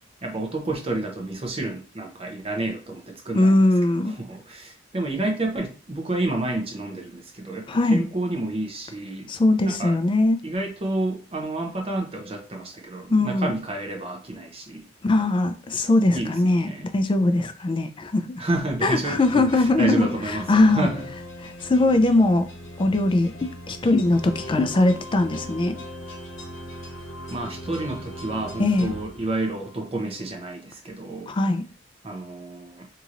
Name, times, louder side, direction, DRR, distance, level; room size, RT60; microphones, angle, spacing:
voice 1, 0.2-3.6 4.0-9.3 9.6-10.0 10.4-14.9 16.1-16.9 18.4-21.1 27.3-31.3 32.0-32.9, right 2 dB, 30° right, 0.7 m, -30 dB
voice 2, 3.4-4.1 7.7-8.0 9.3-10.4 13.1-13.6 15.0-18.4 18.8-20.1 20.5-20.9 21.6-22.5 22.8-25.8 28.6-28.9 31.3-31.6, left 2 dB, 25° left, 0.3 m, -20 dB
sound 1, 19.2-29.8, equal, 90° left, 0.8 m, -39 dB
3.0 x 2.8 x 2.5 m
head